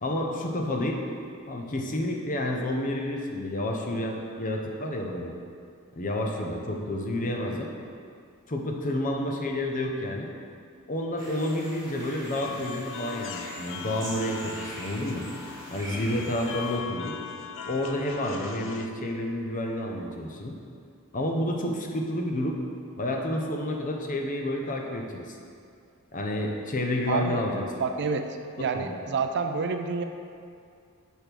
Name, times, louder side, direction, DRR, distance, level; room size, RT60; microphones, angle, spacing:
voice 1, 0.0-1.0 1.5-5.3 6.0-7.7 8.5-10.3 10.9-15.2 15.7-17.2 17.7-20.5 21.1-22.6 23.0-25.4 26.1-27.6 28.6-29.0, left 1 dB, 40° left, 1 dB, 0.7 m, -30 dB
sound 1, 11.2-16.8, right 1 dB, 15° right, 1.7 m, -42 dB
sound 2, 12.4-18.9, left 6 dB, 60° left, 0.4 m, -40 dB
voice 2, 27.1-27.4 27.8-28.3 28.6-30.0, right 5 dB, 50° right, 6 dB, 0.4 m, -28 dB
6.4 x 4.5 x 5.2 m, 2.4 s
head